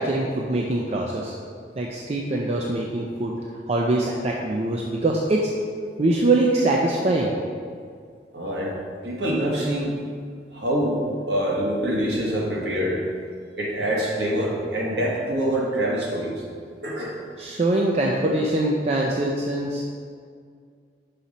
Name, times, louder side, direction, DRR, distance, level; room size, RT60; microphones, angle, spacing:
voice 1, 0.0-1.3 1.8-3.3 3.7-5.5 6.0-7.3 17.4-19.8, right 2 dB, 35° right, -1 dB, 0.4 m, -23 dB
voice 2, 8.3-8.8 9.0-9.9 10.5-13.0 13.6-16.4 16.8-17.2, right 1 dB, 65° right, -3 dB, 1.3 m, -25 dB
5.7 x 4.1 x 5.0 m, 2.1 s
head